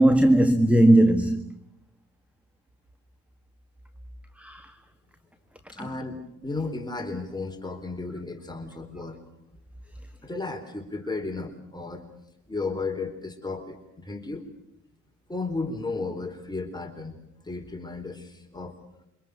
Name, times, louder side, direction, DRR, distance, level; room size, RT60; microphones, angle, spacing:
voice 1, 0.0-1.6 4.4-4.7 5.8-5.9, right 1 dB, 5° right, 1.6 m, -18 dB
voice 2, 5.7-9.2 10.2-12.1 12.5-14.4 15.3-17.2 17.4-18.8, left 3 dB, 15° left, 4.0 m, -34 dB
28.0 x 25.5 x 6.7 m
cardioid pair, 90°, 30 cm